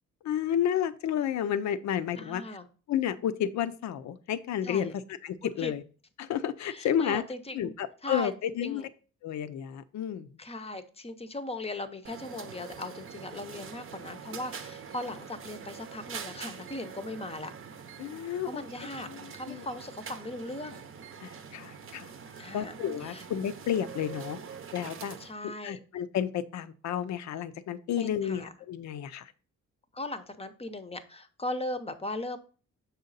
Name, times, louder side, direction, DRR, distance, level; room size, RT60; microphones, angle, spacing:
voice 1, 0.2-2.4 2.9-5.8 6.2-7.2 7.5-8.8 9.2-10.3 18.0-18.6 19.1-19.6 21.2-22.1 22.5-24.4 24.7-25.2 25.4-29.3, left 9 dB, 65° left, 13 dB, 0.6 m, -31 dB
voice 2, 2.2-2.7 4.6-4.9 5.4-5.7 6.6-7.7 8.0-8.3 8.6-8.9 10.4-17.5 18.4-19.1 19.3-20.8 22.4-22.8 23.0-23.2 25.2-25.8 28.0-28.5 29.9-32.4, left 2 dB, 20° left, 10 dB, 0.7 m, -38 dB
sound 1, 12.0-25.3, right 6 dB, 45° right, 0.7 m, -44 dB
6.2 x 4.1 x 4.0 m, 0.39 s
cardioid pair, 90°, 30 cm